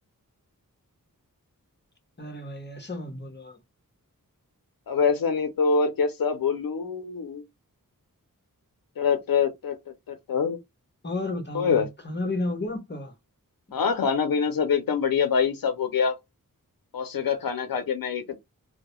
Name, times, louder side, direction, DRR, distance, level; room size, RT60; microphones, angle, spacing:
voice 1, 2.2-3.6 11.0-13.1, left 2 dB, 30° left, 0.8 m, -32 dB
voice 2, 4.9-7.4 9.0-9.8 10.1-10.6 11.5-11.9 13.7-16.2 16.9-18.4, left 6 dB, 85° left, 0.5 m, -25 dB
2.2 x 2.0 x 2.9 m
wide cardioid pair, 65°, 34 cm